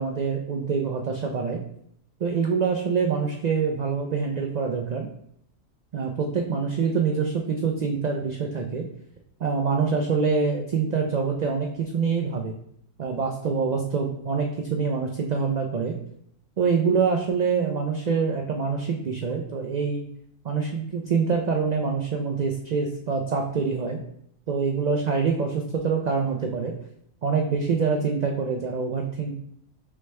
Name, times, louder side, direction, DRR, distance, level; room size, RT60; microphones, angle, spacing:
voice 1, 0.0-1.6 2.2-5.1 5.9-8.8 9.4-12.5 13.0-16.0 16.6-20.0 20.4-24.0 24.5-26.7 27.2-29.3, right 5 dB, 60° right, 1 dB, 0.4 m, -25 dB
4.7 x 3.2 x 3.2 m, 0.70 s
omnidirectional pair, 1.3 m